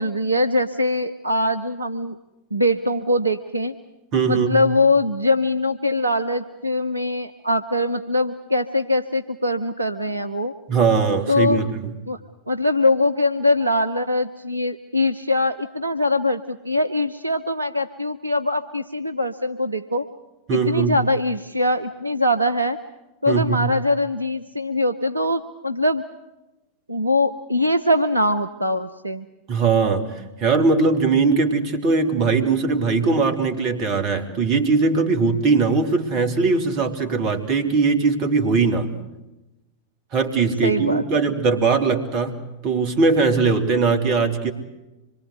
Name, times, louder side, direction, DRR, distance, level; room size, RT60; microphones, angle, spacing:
voice 1, 0.0-2.2 2.5-3.8 4.3-10.5 11.3-11.6 12.1-12.2 12.5-20.1 20.5-22.8 23.2-26.0 26.9-29.3 40.6-41.3, left 1 dB, 85° right, 10 dB, 0.9 m, -22 dB
voice 2, 4.1-4.6 10.7-11.9 20.5-21.0 23.3-23.7 29.5-38.9 40.1-42.4 42.6-44.5, right 4 dB, 40° right, 6 dB, 3.2 m, -20 dB
26.0 x 23.0 x 8.0 m, 0.99 s
figure-of-eight pair, 90°, 0 cm